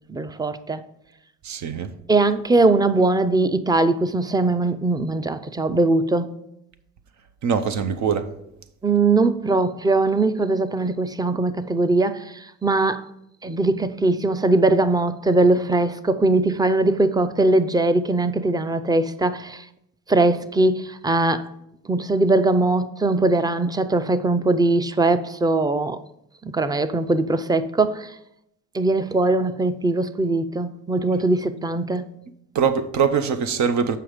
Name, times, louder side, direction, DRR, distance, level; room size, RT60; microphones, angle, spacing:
voice 1, 0.1-0.8 2.1-6.3 8.8-12.2 12.6-13.1 13.4-19.6 20.1-21.5 21.9-26.0 26.4-28.1 28.7-32.1, right 2 dB, 15° right, 0.5 m, -20 dB
voice 2, 1.4-1.9 7.4-8.3 32.5-34.0, right 6 dB, 70° right, 0.7 m, -22 dB
7.6 x 5.5 x 4.9 m
cardioid pair, 90°, 30 cm